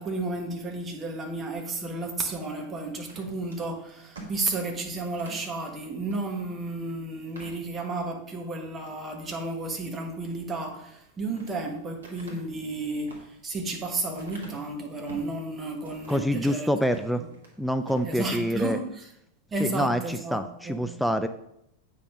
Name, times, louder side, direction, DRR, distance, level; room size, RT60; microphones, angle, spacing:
voice 1, 0.0-16.7 17.2-17.3 18.0-19.1 19.5-20.8, right 2 dB, 20° right, 2 dB, 1.4 m, -32 dB
sound 1, 3.0-5.5 6.1-6.2 6.6-6.7 7.2-8.1 8.6-9.0 10.8-11.6 12.0-15.4 15.8-16.4 16.8-17.6 17.8-18.1, right 2 dB, 65° right, 1.7 m, -47 dB
voice 2, 16.1-17.2 17.6-18.8 19.6-21.3, equal, ahead, 8 dB, 0.3 m, -26 dB
8.2 x 5.3 x 3.7 m, 0.79 s
figure-of-eight pair, 90°, 0 cm